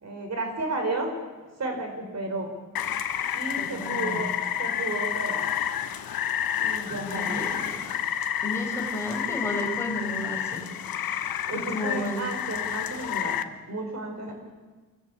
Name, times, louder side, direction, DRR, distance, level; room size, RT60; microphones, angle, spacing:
voice 1, 0.0-1.1 1.6-2.5 3.3-5.5 6.6-7.6 11.5-13.4 13.7-14.3, right 2 dB, 50° right, 4 dB, 4.9 m, -33 dB
Rain, 2.8-13.4, left 9 dB, 90° left, 1.1 m, -30 dB
voice 2, 3.6-4.2 6.9-7.5 8.4-10.6 10.9-12.2 14.3-14.4, left 1 dB, 10° left, -1 dB, 6.1 m, -33 dB
27.0 x 15.0 x 8.6 m, 1.3 s
wide cardioid pair, 120°, 34 cm